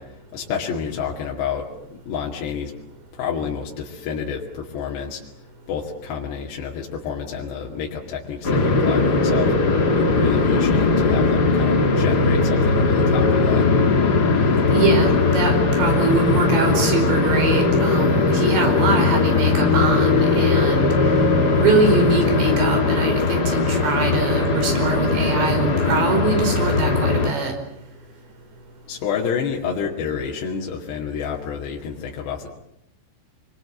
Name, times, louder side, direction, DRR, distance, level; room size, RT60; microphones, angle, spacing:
voice 1, 0.0-2.7 3.1-5.3 5.7-9.5 9.9-13.7 28.9-32.5, left 7 dB, 80° left, -2 dB, 4.5 m, -29 dB
sound 1, 8.4-27.3, left 3 dB, 55° left, 1.1 m, -19 dB
voice 2, 14.7-20.9 21.6-27.5, right 3 dB, 90° right, 5 dB, 7.1 m, -22 dB
26.5 x 24.0 x 7.9 m, 0.77 s
omnidirectional pair, 4.9 m